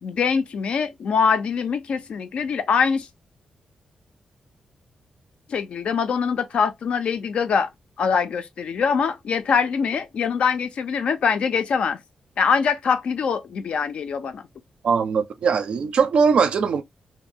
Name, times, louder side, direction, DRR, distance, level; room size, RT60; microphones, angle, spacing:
voice 1, 0.0-3.1 5.5-7.7 8.0-12.0 12.4-14.4, left 6 dB, 65° left, 0.4 m, -23 dB
voice 2, 14.8-16.8, right 5 dB, 65° right, 0.4 m, -20 dB
2.6 x 2.2 x 2.7 m
wide cardioid pair, 125°, 2 cm